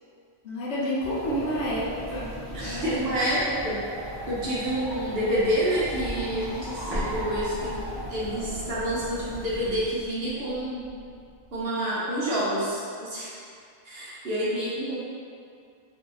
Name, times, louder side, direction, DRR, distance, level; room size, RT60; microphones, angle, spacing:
voice 1, 0.4-2.9, equal, 65° left, -6 dB, 0.9 m, -30 dB
sound 1, 1.0-9.9, equal, 25° right, 0.5 m, -38 dB
voice 2, 2.5-3.8 4.3-7.7 8.1-10.9 11.5-13.3 13.8-15.0, equal, 55° right, -8 dB, 0.8 m, -28 dB
Explosion, 6.9-11.7, equal, 10° left, 0.9 m, -39 dB
2.7 x 2.7 x 3.8 m, 2.4 s
omnidirectional pair, 1.4 m